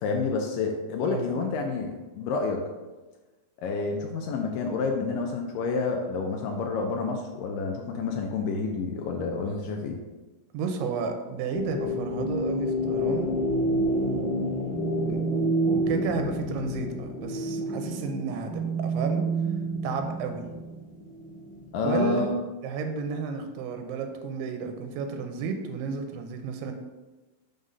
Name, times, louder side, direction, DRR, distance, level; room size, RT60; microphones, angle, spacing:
voice 1, 0.0-2.6 3.6-10.0 21.7-22.3, left 4 dB, 90° left, 2 dB, 1.9 m, -29 dB
voice 2, 1.0-1.5 10.5-13.3 13.9-14.5 14.8-19.2 19.8-20.5 21.8-22.3 22.6-26.7, right 5 dB, 90° right, 5 dB, 2.7 m, -32 dB
sound 1, 11.5-22.0, right 1 dB, 25° left, 1.7 m, -29 dB
6.0 x 3.8 x 5.4 m, 1.2 s
omnidirectional pair, 4.6 m